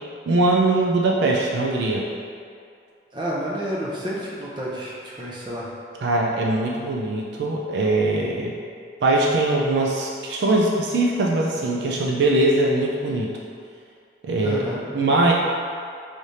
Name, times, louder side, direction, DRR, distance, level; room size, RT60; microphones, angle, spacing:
voice 1, 0.3-2.1 6.0-8.6 9.0-13.3 14.2-14.6 14.9-15.3, right 2 dB, 75° right, -2 dB, 0.4 m, -21 dB
voice 2, 3.1-5.7 14.4-14.8, equal, 25° right, -5 dB, 0.6 m, -30 dB
4.9 x 3.2 x 2.7 m, 2.3 s
head